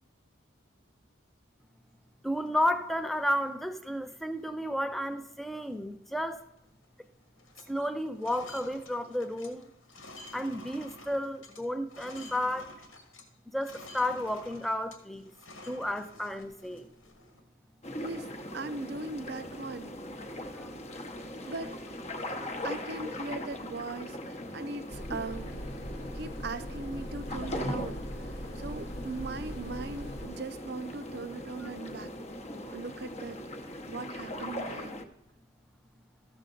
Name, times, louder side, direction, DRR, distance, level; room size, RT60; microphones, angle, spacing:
voice 1, 2.2-6.4 7.7-9.6 10.3-12.7 13.5-15.3 15.7-16.9 20.6-20.7 31.6-31.7, left 1 dB, ahead, 10 dB, 0.5 m, -32 dB
sound 1, 2.3-3.4 3.9-4.0 4.2-4.6 5.0-5.2 5.5-6.6 6.8-7.1 7.3-13.3 13.6-17.4, left 2 dB, 90° left, 1.8 m, -50 dB
sound 2, 17.8-35.0, left 1 dB, 35° left, 0.8 m, -40 dB
voice 2, 18.5-20.0 21.5-21.8 22.3-22.4 22.6-25.6 26.1-32.1 32.7-33.4 33.9-34.9, right 3 dB, 55° right, 11 dB, 0.6 m, -39 dB
sound 3, 24.9-30.3, equal, 65° left, 1.2 m, -41 dB
14.0 x 6.6 x 3.8 m, 0.92 s
head